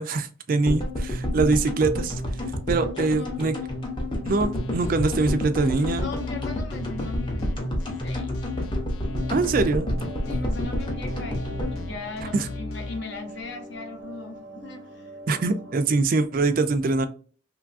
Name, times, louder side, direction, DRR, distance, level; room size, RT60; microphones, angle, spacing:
voice 1, 0.0-2.2 2.7-3.5 4.2-6.1 9.3-9.9 12.3-12.5 15.3-17.1, right 3 dB, 45° right, 0.3 m, -23 dB
sound 1, 0.7-12.9 13.1-13.2 13.4-13.5, left 1 dB, 25° left, 0.6 m, -30 dB
voice 2, 3.0-3.6 6.0-8.4 10.3-15.8, left 3 dB, 60° left, 0.7 m, -38 dB
sound 2, 4.3-13.0, left 2 dB, 85° left, 0.4 m, -36 dB
sound 3, 9.0-15.9, right 1 dB, 80° right, 0.6 m, -42 dB
3.1 x 2.3 x 2.4 m
head